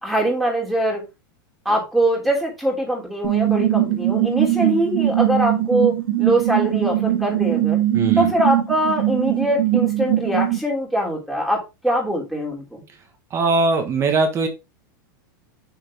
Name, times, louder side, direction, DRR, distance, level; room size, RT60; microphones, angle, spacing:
voice 1, 0.0-1.0 1.6-7.8 8.2-12.8, right 1 dB, ahead, -1 dB, 3.1 m, -22 dB
sound 1, 3.2-10.6, right 13 dB, 65° right, 1.7 m, -21 dB
voice 2, 7.9-8.3 13.3-14.5, right 3 dB, 25° right, 6 dB, 1.5 m, -20 dB
6.6 x 6.6 x 3.6 m, 0.25 s
supercardioid pair, 155°, 11 cm